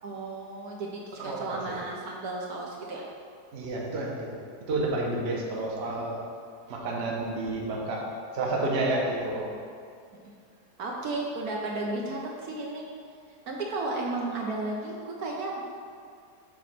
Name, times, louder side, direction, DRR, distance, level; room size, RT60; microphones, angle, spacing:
voice 1, 0.0-3.0 10.8-12.9 13.5-15.6, right 2 dB, 65° right, -2 dB, 1.2 m, -33 dB
voice 2, 1.2-1.6 3.5-4.3 4.7-6.2 6.7-8.0 8.3-9.5, right 2 dB, 45° right, -2 dB, 0.9 m, -30 dB
7.1 x 3.1 x 5.9 m, 2.3 s
omnidirectional pair, 1.8 m